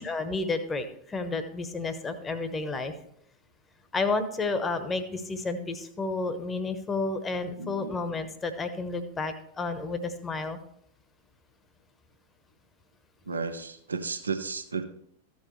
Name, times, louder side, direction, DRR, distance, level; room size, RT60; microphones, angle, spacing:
voice 1, 0.0-2.9 3.9-10.6, left 3 dB, 15° left, 10 dB, 1.0 m, -31 dB
voice 2, 7.6-8.0 13.3-14.8, right 4 dB, 75° right, 8 dB, 0.8 m, -33 dB
14.0 x 7.0 x 3.2 m, 0.71 s
figure-of-eight pair, 90°, 0 cm